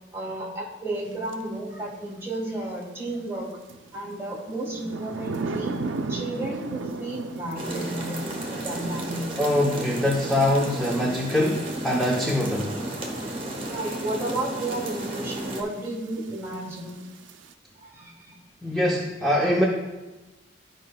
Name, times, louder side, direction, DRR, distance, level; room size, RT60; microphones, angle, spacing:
voice 1, 0.1-3.5 3.9-5.8 6.1-8.2 8.5-9.2 13.1-13.2 13.7-17.0 17.8-18.4, right 2 dB, 15° right, -2 dB, 1.4 m, -32 dB
sound 1, 1.3-1.4 3.7-17.5, right 3 dB, 80° right, 0.4 m, -38 dB
sound 2, 7.6-15.6, right 1 dB, 30° right, 1.0 m, -33 dB
voice 2, 9.4-12.8 18.6-19.6, left 1 dB, ahead, -4 dB, 0.6 m, -23 dB
12.0 x 5.1 x 2.2 m, 1.1 s
head